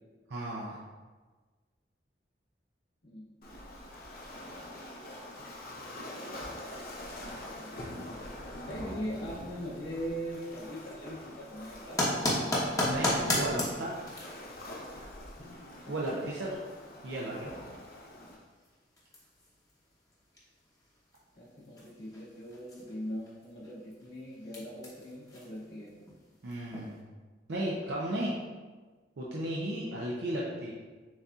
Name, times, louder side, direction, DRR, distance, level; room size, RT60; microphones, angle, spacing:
voice 1, 0.3-0.8 12.7-14.0 15.9-16.6 17.0-17.5 26.4-27.1 27.5-28.3 29.2-30.7, right 1 dB, 70° right, -5 dB, 0.6 m, -34 dB
voice 2, 3.0-3.4 7.6-8.3 8.6-12.0 16.1-16.3 18.2-18.3 21.4-25.9, equal, 75° left, -8 dB, 1.5 m, -41 dB
Waves surf, 3.4-18.4, left 1 dB, 55° left, 0.8 m, -45 dB
sound 1, 11.9-27.0, left 1 dB, 20° left, 1.0 m, -37 dB
7.2 x 2.7 x 2.4 m, 1.4 s
head